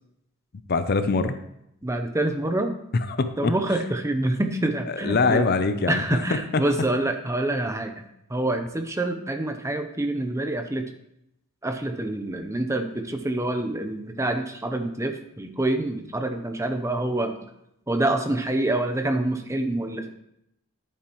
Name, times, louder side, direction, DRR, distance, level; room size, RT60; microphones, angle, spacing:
voice 1, 0.7-1.4 2.9-3.5 4.9-6.0, left 3 dB, 45° left, 10 dB, 0.5 m, -23 dB
voice 2, 1.8-2.7 3.4-5.4 5.9-10.9 11.6-17.3 17.9-20.1, right 1 dB, 15° right, 6 dB, 0.7 m, -26 dB
11.0 x 8.5 x 3.0 m, 0.79 s
head